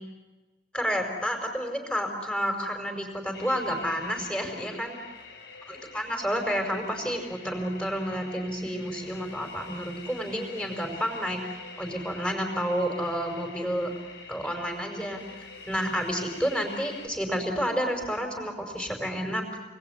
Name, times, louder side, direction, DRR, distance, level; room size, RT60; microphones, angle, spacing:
voice 1, 0.7-5.0 5.7-11.4 11.8-13.9 14.3-15.2 15.7-19.6, equal, 5° left, 3 dB, 5.4 m, -30 dB
sound 1, 3.3-17.1, left 4 dB, 70° left, 4.2 m, -45 dB
28.5 x 20.5 x 9.6 m, 1.2 s
head